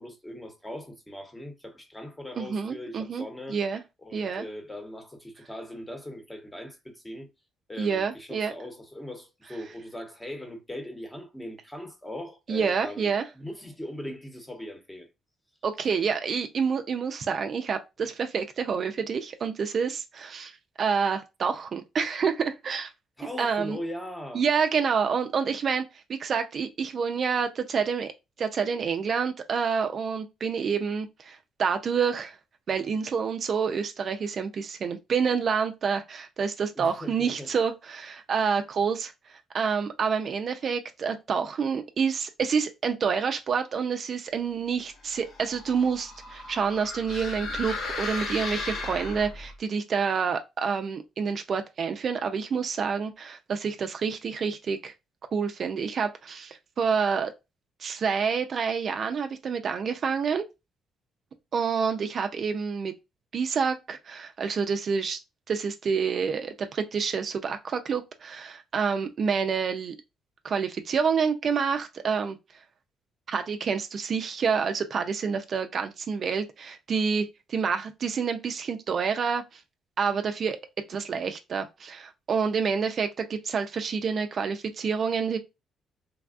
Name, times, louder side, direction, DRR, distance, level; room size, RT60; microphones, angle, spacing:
voice 1, 0.0-3.6 4.0-7.3 7.7-15.1 23.2-24.4 36.7-37.5, left 1 dB, 10° left, 0.9 m, -40 dB
voice 2, 2.4-3.2 3.5-3.8 4.1-4.4 7.8-8.5 12.5-13.2 15.6-22.9 23.4-23.8 24.3-25.8 26.1-28.1 28.4-32.4 32.7-54.9 55.3-57.3 57.8-60.4 61.5-62.9 63.3-65.2 65.5-70.0 70.4-72.4 73.3-79.6 80.0-80.6 80.9-85.4, right 6 dB, 50° right, 0.4 m, -28 dB
sound 1, 45.1-49.5, left 3 dB, 65° left, 0.9 m, -36 dB
3.3 x 2.2 x 2.4 m
cardioid pair, 100°, 0 cm